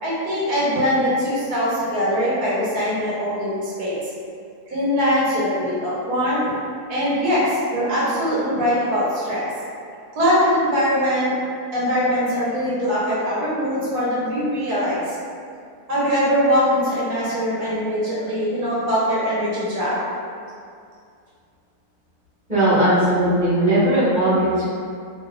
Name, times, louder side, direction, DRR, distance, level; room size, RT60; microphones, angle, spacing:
voice 1, 0.0-4.1 4.7-6.4 6.9-9.5 10.1-11.3 11.7-15.2 15.9-20.0, equal, 80° right, -8 dB, 1.3 m, -22 dB
voice 2, 22.5-24.6, right 1 dB, 5° right, -15 dB, 1.1 m, -18 dB
2.9 x 2.3 x 2.2 m, 2.3 s
omnidirectional pair, 1.6 m